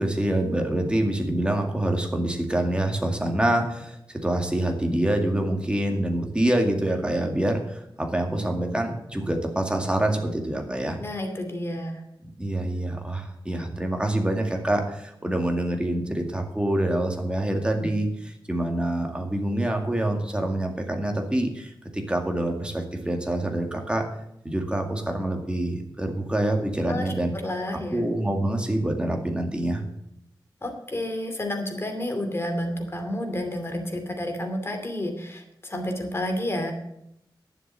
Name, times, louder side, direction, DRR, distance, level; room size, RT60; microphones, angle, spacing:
voice 1, 0.0-11.0 12.4-24.1 24.4-27.3 27.9-29.8, right 1 dB, 10° right, 2 dB, 2.1 m, -26 dB
voice 2, 11.0-12.1 26.9-27.1 27.4-28.1 30.6-36.7, left 1 dB, 30° left, 4 dB, 2.6 m, -30 dB
11.0 x 7.3 x 7.5 m, 0.80 s
wide cardioid pair, 110°, 8 cm